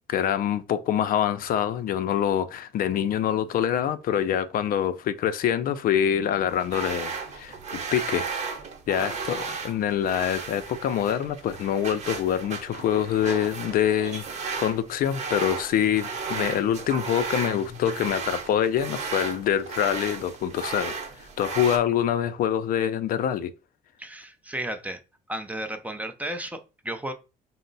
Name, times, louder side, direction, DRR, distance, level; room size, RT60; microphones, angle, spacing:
voice 1, 0.1-7.6 7.9-8.3 8.9-23.5, left 9 dB, 60° left, 0.4 m, -25 dB
sound 1, 6.5-21.8, right 5 dB, 45° right, 0.9 m, -35 dB
voice 2, 24.0-25.0 25.3-27.1, right 1 dB, 10° right, 0.5 m, -34 dB
4.3 x 2.0 x 3.9 m
cardioid pair, 110°, 17 cm